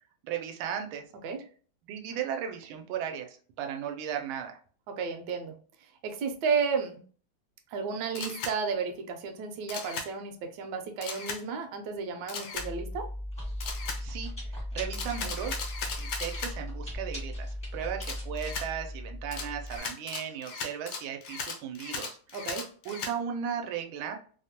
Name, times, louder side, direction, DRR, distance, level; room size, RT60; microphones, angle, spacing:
voice 1, 0.2-1.0 1.9-4.6 14.0-15.7 16.0-22.2 22.8-24.2, right 8 dB, 90° right, 4 dB, 1.4 m, -36 dB
voice 2, 4.9-5.5 5.8-7.0 7.7-13.1 22.3-22.7, right 5 dB, 75° right, 4 dB, 1.1 m, -33 dB
Camera, 8.1-8.5 9.7-10.1 11.0-11.4 12.3-12.7 13.6-14.0 14.9-16.5 18.0-18.7 19.3-23.1, left 5 dB, 70° left, 1.1 m, -37 dB
Chewing mastication, 12.5-19.8, left 1 dB, 10° left, 0.4 m, -37 dB
3.4 x 2.1 x 2.7 m, 0.42 s
omnidirectional pair, 2.2 m